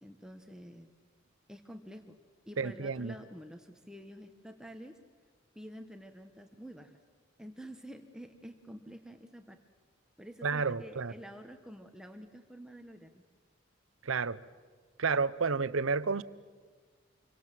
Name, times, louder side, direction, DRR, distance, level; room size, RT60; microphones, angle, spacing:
voice 1, 0.0-0.9 1.5-2.2 2.5-5.0 5.5-7.0 7.4-9.6 10.2-13.2, equal, 5° right, 1.2 m, -48 dB
voice 2, 2.6-3.1 10.4-11.1 14.0-14.4 15.0-16.2, right 4 dB, 80° right, 0.8 m, -30 dB
27.5 x 23.5 x 7.6 m
head